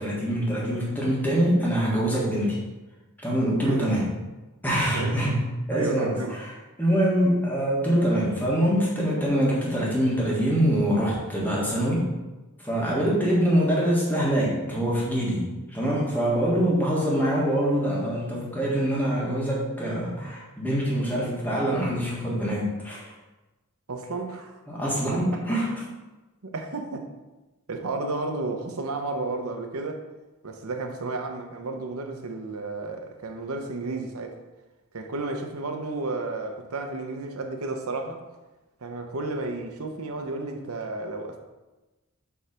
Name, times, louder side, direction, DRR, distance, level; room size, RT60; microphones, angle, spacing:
voice 1, 0.0-2.6 3.2-4.1 4.6-6.5 6.8-12.1 12.6-23.1 24.7-25.7, equal, 10° left, -5 dB, 1.6 m, -24 dB
voice 2, 5.7-6.3 23.9-24.6 25.1-25.2 26.4-27.1 27.7-30.0 30.4-34.4 34.9-38.2 38.8-41.4, right 3 dB, 75° right, 4 dB, 0.8 m, -32 dB
7.0 x 3.3 x 5.1 m, 1.1 s
head